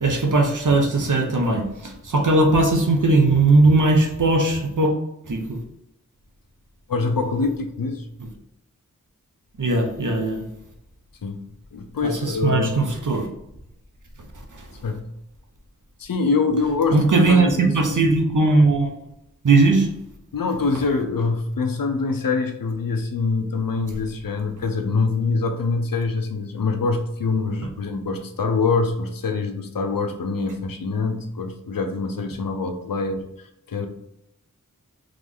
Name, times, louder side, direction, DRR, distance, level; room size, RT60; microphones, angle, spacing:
voice 1, 0.0-5.0 5.3-5.6 9.6-10.4 12.0-13.3 14.5-14.7 16.9-19.0 19.4-19.9, right 2 dB, 65° right, 3 dB, 0.9 m, -19 dB
voice 2, 6.9-8.1 11.2-11.4 11.7-12.8 14.8-15.1 16.0-17.7 20.3-33.9, left 4 dB, 80° left, 6 dB, 0.7 m, -24 dB
3.8 x 3.1 x 3.6 m, 0.83 s
wide cardioid pair, 50°, 33 cm